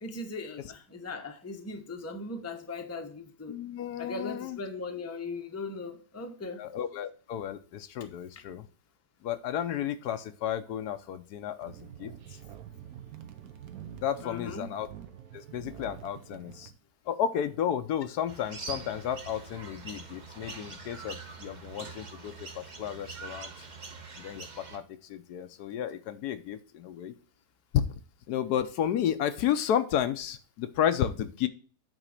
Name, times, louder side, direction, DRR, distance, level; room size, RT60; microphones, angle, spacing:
voice 1, 0.0-3.6 4.0-6.6 14.2-14.7, left 3 dB, 15° left, 0.7 m, -39 dB
voice 2, 3.5-4.6 6.6-8.6 9.2-12.1 14.0-14.9 15.3-16.7 17.1-23.5 24.2-24.8 25.1-27.1 27.7-27.8 28.3-31.5, left 9 dB, 75° left, 1.2 m, -32 dB
sound 1, 11.6-16.7, right 9 dB, 65° right, 1.2 m, -46 dB
sound 2, 18.3-24.8, right 3 dB, 35° right, 1.0 m, -43 dB
9.0 x 3.6 x 6.5 m
omnidirectional pair, 1.7 m